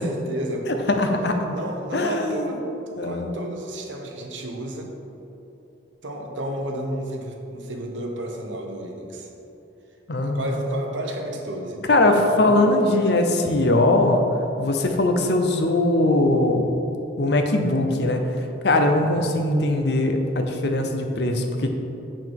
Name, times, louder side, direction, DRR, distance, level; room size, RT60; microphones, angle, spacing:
voice 1, 0.0-0.9 1.5-2.6 3.0-4.9 6.0-9.3 10.1-13.2 19.0-19.2, right 1 dB, 75° right, 2 dB, 1.0 m, -32 dB
voice 2, 0.9-1.4 1.9-2.5 3.0-3.3 10.1-10.5 11.9-14.3 14.6-16.7 17.2-18.2 18.6-21.7, left 2 dB, 60° left, 4 dB, 0.7 m, -20 dB
7.3 x 5.8 x 4.7 m, 3.0 s
head